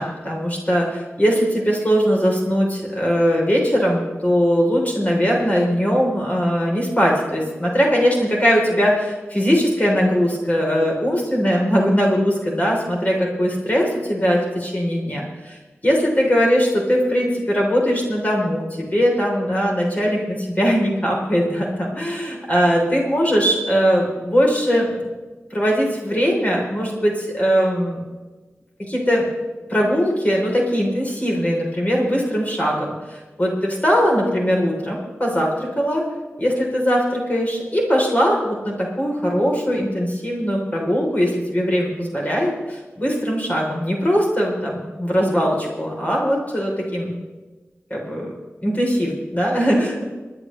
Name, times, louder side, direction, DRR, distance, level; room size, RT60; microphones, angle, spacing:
voice 1, 0.0-15.6 15.8-24.9 25.5-28.0 28.8-29.3 29.7-36.0 36.4-47.2 47.9-48.3 48.6-50.0, equal, 35° left, -2 dB, 3.3 m, -20 dB
27.0 x 10.0 x 3.1 m, 1.2 s
wide cardioid pair, 60°, 5 cm